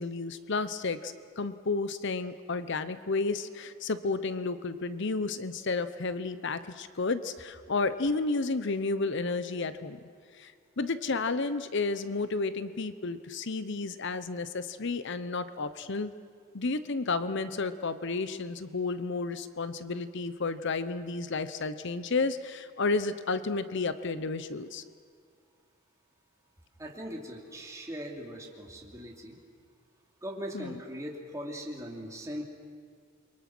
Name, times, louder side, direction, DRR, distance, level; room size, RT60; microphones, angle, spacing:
voice 1, 0.0-10.0 10.3-16.1 16.5-24.8 30.5-30.8, left 3 dB, 60° left, 13 dB, 0.9 m, -32 dB
voice 2, 26.8-29.4 30.2-32.4, equal, 15° right, 0 dB, 3.0 m, -40 dB
29.5 x 23.5 x 6.2 m, 2.1 s
head